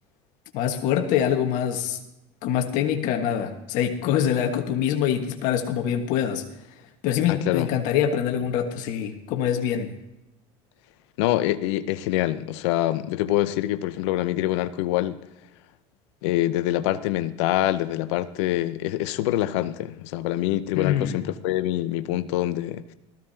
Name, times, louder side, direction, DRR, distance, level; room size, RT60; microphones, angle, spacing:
voice 1, 0.5-2.0 2.4-6.4 7.0-9.9 20.7-21.2, left 9 dB, 65° left, 1.5 m, -24 dB
voice 2, 7.3-7.7 11.2-15.2 16.2-22.9, left 14 dB, 80° left, 0.7 m, -25 dB
17.0 x 15.0 x 2.8 m
supercardioid pair, 105°, 14 cm